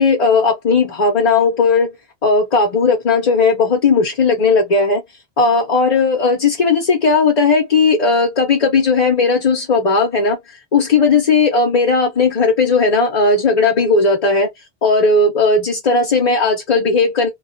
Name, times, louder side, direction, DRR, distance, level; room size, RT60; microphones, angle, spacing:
voice 1, 0.0-1.9 2.2-5.0 5.4-10.4 10.7-14.5 14.8-17.3, left 4 dB, 45° left, 0.6 m, -15 dB
2.3 x 2.2 x 2.5 m
omnidirectional pair, 1.0 m